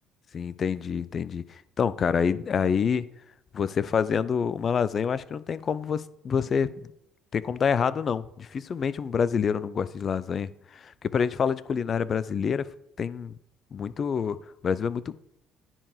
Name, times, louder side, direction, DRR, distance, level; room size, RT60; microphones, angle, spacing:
voice 1, 0.3-3.0 3.5-6.9 7.3-12.7 13.0-13.3 13.7-15.1, left 6 dB, 45° left, 17 dB, 0.5 m, -27 dB
9.9 x 4.6 x 4.9 m, 0.78 s
hypercardioid pair, 55°, 0 cm